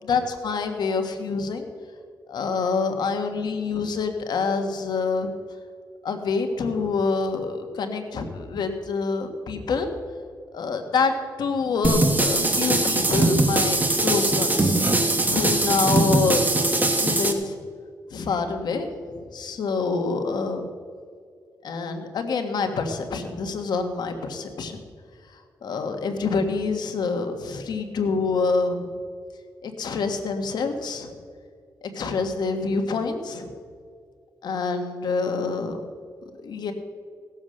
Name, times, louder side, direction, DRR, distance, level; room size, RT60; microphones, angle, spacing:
voice 1, 0.1-1.7 2.3-5.3 6.0-9.9 10.5-11.1 11.4-14.7 15.3-16.5 16.9-17.6 18.1-18.9 19.3-20.6 21.6-24.8 25.6-28.8 29.6-31.1 31.9-33.5 34.4-35.8 36.4-36.7, left 4 dB, 80° left, 6 dB, 1.5 m, -26 dB
sound 1, 11.8-17.3, right 2 dB, 25° right, 1.5 m, -21 dB
17.0 x 7.3 x 6.4 m, 2.1 s
cardioid pair, 85°, 7 cm